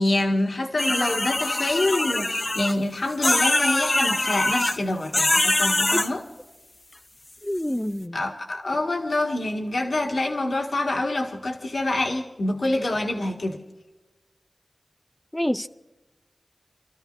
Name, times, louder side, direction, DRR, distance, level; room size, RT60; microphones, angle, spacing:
voice 1, 0.0-6.2 8.1-13.6, left 2 dB, 80° left, 1.8 m, -26 dB
sound 1, 0.8-2.7 3.2-4.8 5.1-6.1, left 2 dB, 50° left, 0.8 m, -23 dB
voice 2, 7.4-8.2 15.3-15.7, equal, 15° left, 0.6 m, -27 dB
29.5 x 13.5 x 2.6 m
cardioid pair, 40°, 0 cm